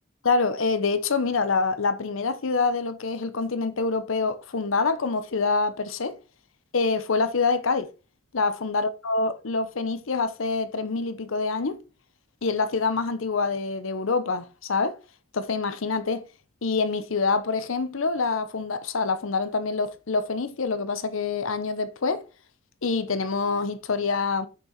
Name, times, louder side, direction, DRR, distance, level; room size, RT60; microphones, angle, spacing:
voice 1, 0.2-6.2 6.7-7.9 8.3-11.8 12.4-15.0 15.3-16.2 16.6-22.2 22.8-24.5, left 4 dB, 80° left, 0.8 m, -26 dB
6.2 x 5.8 x 4.2 m
head